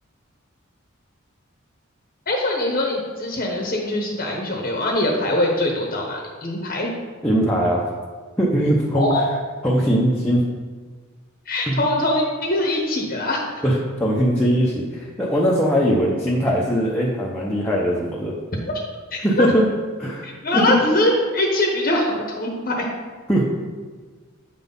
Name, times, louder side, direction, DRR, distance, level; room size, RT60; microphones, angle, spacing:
voice 1, 2.3-6.9 8.9-9.3 11.5-13.4 19.1-19.5 20.2-22.9, left 1 dB, 45° left, 0 dB, 1.0 m, -22 dB
voice 2, 7.2-7.9 8.4-9.3 9.6-10.5 11.7-11.8 13.6-18.4 19.2-19.7 20.0-20.8 23.3-23.4, equal, 10° left, -5 dB, 0.8 m, -20 dB
8.3 x 4.1 x 5.3 m, 1.5 s
head